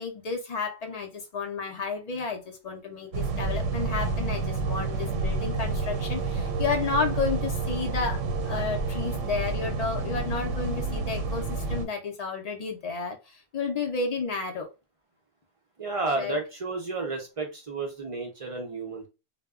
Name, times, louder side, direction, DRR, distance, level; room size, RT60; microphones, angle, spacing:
voice 1, 0.0-14.7 16.2-16.4, left 4 dB, 60° left, 3 dB, 0.4 m, -32 dB
sound 1, 3.1-11.9, right 3 dB, 85° right, 1.0 m, -29 dB
voice 2, 15.8-19.1, right 3 dB, 50° right, 2 dB, 0.4 m, -32 dB
2.1 x 2.0 x 3.5 m, 0.28 s
omnidirectional pair, 1.3 m